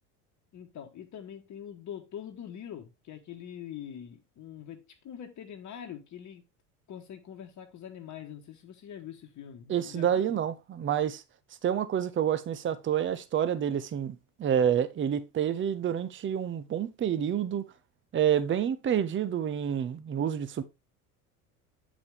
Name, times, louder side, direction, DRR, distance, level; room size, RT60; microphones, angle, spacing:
voice 1, 0.5-6.4 6.9-10.2, left 9 dB, 40° left, 1.4 m, -44 dB
voice 2, 9.7-11.2 11.6-17.6 18.1-20.6, right 9 dB, 25° right, 0.9 m, -28 dB
8.2 x 5.0 x 3.5 m
hypercardioid pair, 75°, 45 cm